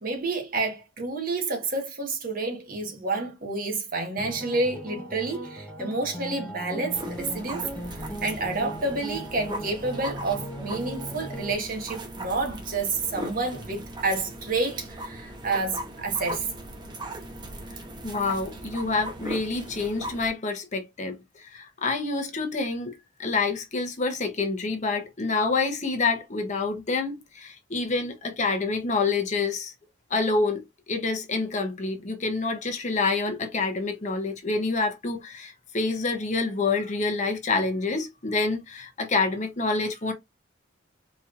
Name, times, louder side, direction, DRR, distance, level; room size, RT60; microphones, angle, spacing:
voice 1, 0.0-16.5, right 3 dB, 45° right, 1.2 m, -29 dB
sound 1, 4.2-11.6, equal, 5° left, 0.6 m, -38 dB
sound 2, 6.9-20.3, right 1 dB, 20° right, 0.8 m, -38 dB
voice 2, 18.0-29.7 30.1-40.1, left 3 dB, 35° left, 0.8 m, -27 dB
4.2 x 3.1 x 2.4 m
head